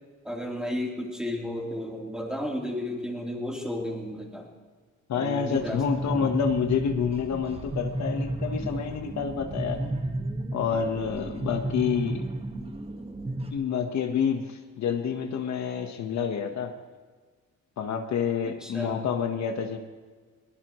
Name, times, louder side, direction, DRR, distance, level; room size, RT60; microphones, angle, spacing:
voice 1, 0.2-4.5 5.1-6.3 8.7-8.8 18.5-19.1, left 1 dB, ahead, -1 dB, 3.4 m, -33 dB
voice 2, 5.1-9.8 10.5-12.3 13.5-16.7 17.8-19.8, left 7 dB, 65° left, 5 dB, 1.3 m, -28 dB
sound 1, 5.5-13.5, right 1 dB, 20° right, 1.6 m, -33 dB
22.0 x 18.0 x 3.1 m, 1.5 s
cardioid pair, 90°, 30 cm